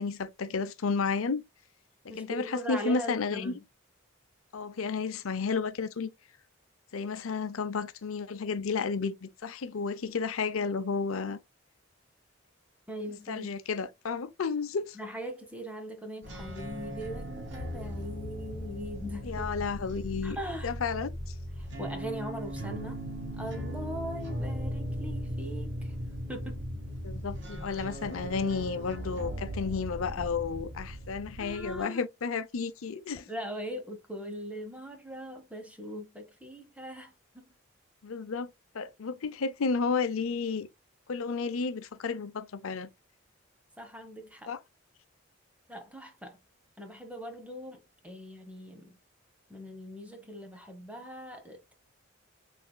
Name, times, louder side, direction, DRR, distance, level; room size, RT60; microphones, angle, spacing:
voice 1, 0.0-1.4 2.0-3.5 4.5-6.1 6.9-11.4 13.3-15.0 19.2-20.4 20.6-21.3 27.0-33.3 38.0-38.5 38.7-40.7 41.1-42.9 44.5-44.6, left 5 dB, 85° left, 0.6 m, -32 dB
voice 2, 2.1-3.6 12.9-13.5 14.9-19.3 20.2-20.7 21.6-23.0 23.4-26.0 26.3-26.7 31.4-32.0 33.3-37.5 43.8-44.5 45.7-46.4 46.8-48.9 49.5-51.7, equal, 5° right, 1.0 m, -40 dB
sound 1, 16.2-31.8, equal, 60° right, 1.8 m, -38 dB
6.5 x 3.4 x 2.2 m
head